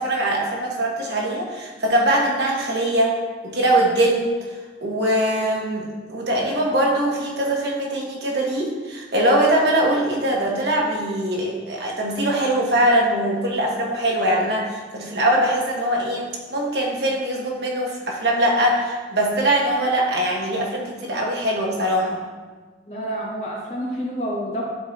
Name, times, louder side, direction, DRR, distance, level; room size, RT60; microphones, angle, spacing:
voice 1, 0.0-3.1 3.4-4.3 4.8-22.2, right 1 dB, 65° right, -2 dB, 1.4 m, -22 dB
voice 2, 22.9-24.6, equal, 40° left, -6 dB, 2.0 m, -28 dB
11.0 x 4.6 x 2.9 m, 1.3 s
head